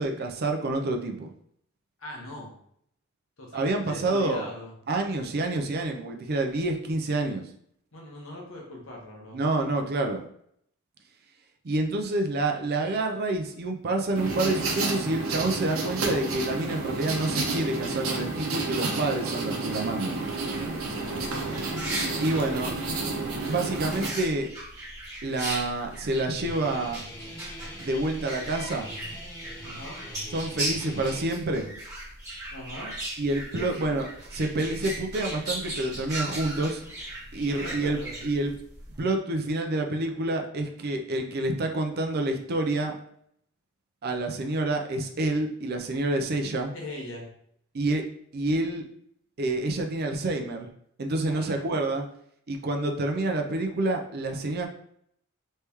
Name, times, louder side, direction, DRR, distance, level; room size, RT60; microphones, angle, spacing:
voice 1, 0.0-1.3 3.5-4.5 4.9-7.4 9.3-10.2 11.6-20.3 22.2-22.7 23.5-24.5 25.2-27.0 27.8-28.9 30.3-31.7 33.2-34.1 34.4-36.8 37.3-38.5 39.0-43.0 44.0-46.7 47.7-48.0 48.3-48.8 49.4-50.7 51.0-52.1 52.5-54.7, right 2 dB, 50° right, 4 dB, 0.5 m, -28 dB
voice 2, 2.0-2.5 3.4-4.7 7.9-9.4 20.8-21.8 29.6-30.0 32.5-32.9 33.6-34.0 37.5-38.1 46.7-47.3 51.3-51.8, left 1 dB, 65° left, -1 dB, 1.2 m, -41 dB
sound 1, 14.2-24.1, right 3 dB, 75° right, 0.8 m, -30 dB
sound 2, 20.2-39.0, right 1 dB, 15° right, 1.3 m, -38 dB
Guitar, 26.4-31.3, left 1 dB, 20° left, 1.3 m, -42 dB
3.2 x 2.9 x 3.5 m, 0.68 s
head